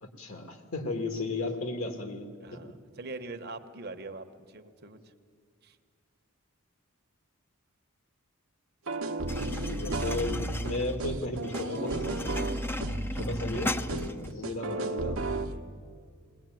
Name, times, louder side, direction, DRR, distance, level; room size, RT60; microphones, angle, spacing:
voice 1, 0.0-2.6 9.7-12.3 13.1-15.2, left 2 dB, 65° left, 5 dB, 1.9 m, -35 dB
voice 2, 2.4-5.0 5.6-5.8 12.7-13.4 15.5-15.6, right 3 dB, 45° right, 7 dB, 1.1 m, -43 dB
sound 1, 8.9-15.6, right 2 dB, 70° right, 1.0 m, -33 dB
sound 2, 9.3-14.3, left 2 dB, 10° left, 0.6 m, -37 dB
21.0 x 19.0 x 9.2 m, 2.1 s
head